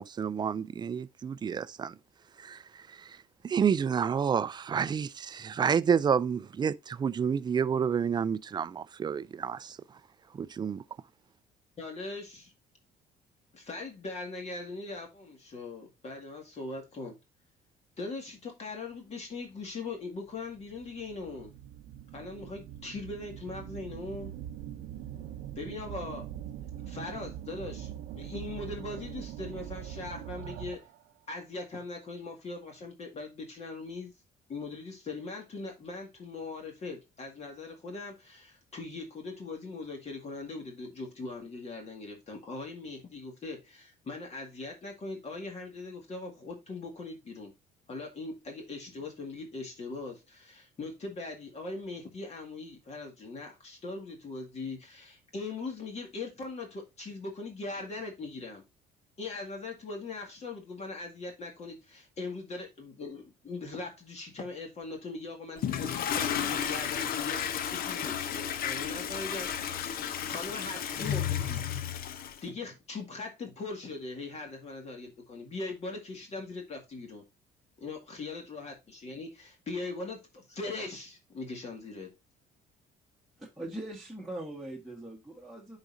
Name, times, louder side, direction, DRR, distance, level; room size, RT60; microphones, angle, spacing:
voice 1, 0.0-1.9 2.4-2.6 2.9-3.1 3.4-9.8 10.3-10.8, right 7 dB, 25° right, 0.4 m, -29 dB
voice 2, 11.8-12.5 13.5-17.2 18.0-21.5 22.1-24.3 25.6-26.3 26.9-30.8 31.3-34.1 34.5-47.5 47.9-58.6 59.2-71.6 72.4-77.2 77.8-82.1, left 3 dB, 40° left, 1.9 m, -40 dB
sound 1, 19.6-19.7 20.4-31.0, right 11 dB, 80° right, 0.6 m, -43 dB
Toilet flush, 65.6-72.4, left 9 dB, 60° left, 0.7 m, -33 dB
voice 3, 83.4-85.8, right 1 dB, ahead, 1.4 m, -41 dB
10.5 x 4.1 x 2.6 m
cardioid pair, 110°, 17 cm